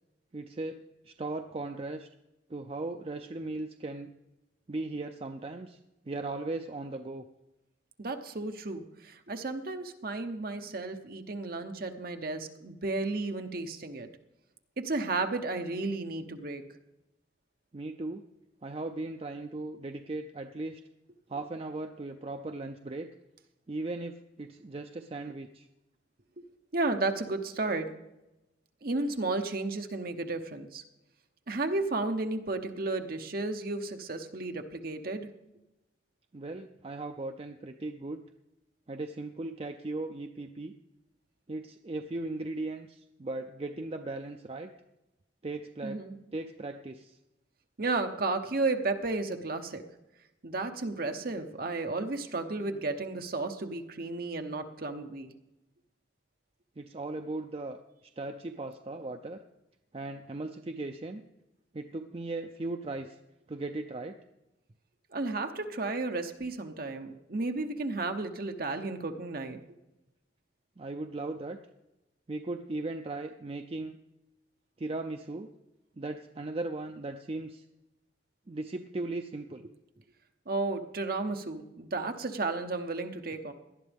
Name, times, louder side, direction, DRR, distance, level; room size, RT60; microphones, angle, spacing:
voice 1, 0.3-0.8 1.0-2.1 2.5-4.1 4.7-5.8 6.1-7.2 17.7-18.2 18.6-20.8 21.3-23.1 23.7-25.7 36.3-38.2 38.9-40.7 41.5-44.7 45.4-46.0 46.3-47.2 56.8-57.8 58.2-59.4 59.9-61.2 61.7-63.2 63.5-64.2 70.8-71.6 72.3-74.0 74.8-75.5 76.0-77.6 78.5-79.7, right 2 dB, 30° right, 6 dB, 0.5 m, -37 dB
voice 2, 8.0-14.1 14.8-16.6 26.4-26.5 26.7-27.9 28.8-30.8 31.5-35.3 45.8-46.2 47.8-49.8 50.4-55.3 65.1-69.6 80.5-83.5, right 3 dB, 50° right, 6 dB, 0.9 m, -33 dB
18.5 x 11.5 x 3.5 m, 0.96 s
head